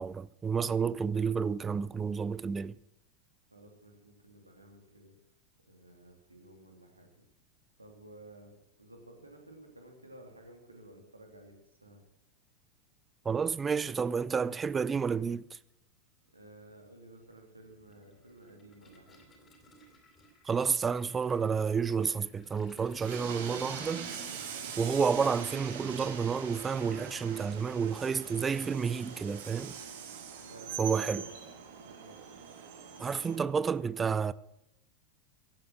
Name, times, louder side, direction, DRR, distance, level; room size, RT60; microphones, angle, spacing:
voice 1, 0.0-2.8 13.2-15.6 20.4-24.1 24.8-29.8 30.8-31.2 33.0-34.3, right 6 dB, 20° right, 0.4 m, -30 dB
voice 2, 3.5-5.1 5.7-7.1 7.8-12.0 16.3-19.2 30.4-31.3 31.7-32.2, right 1 dB, 85° right, 3.0 m, -54 dB
Toilet flush, 15.4-15.5 15.8-24.4, equal, 20° left, 3.5 m, -59 dB
Train, 23.0-33.4, right 7 dB, 55° right, 2.1 m, -43 dB
16.5 x 8.5 x 7.7 m
figure-of-eight pair, 90°, 0 cm